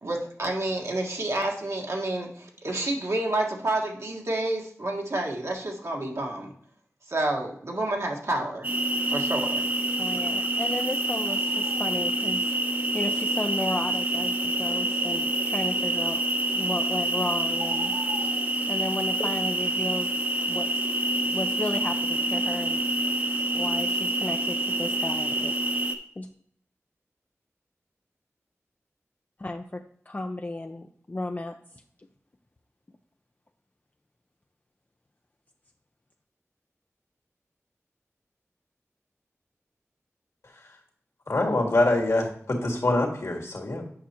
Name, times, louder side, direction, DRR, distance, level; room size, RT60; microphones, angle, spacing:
voice 1, 0.0-6.5 7.1-8.7 9.1-9.6, right 1 dB, 65° right, 0 dB, 1.5 m, -29 dB
sound 1, 8.6-25.9, right 1 dB, 35° right, 0.9 m, -27 dB
voice 2, 10.0-12.4 12.9-16.2 16.5-17.9 18.7-20.1 20.5-20.7 21.3-22.8 23.5-25.5 26.2-26.3 29.4-31.5, left 2 dB, 35° left, 4 dB, 0.5 m, -34 dB
voice 3, 41.3-43.8, left 2 dB, 65° left, 0 dB, 1.9 m, -24 dB
8.6 x 5.6 x 2.9 m, 0.64 s
wide cardioid pair, 50°, 5 cm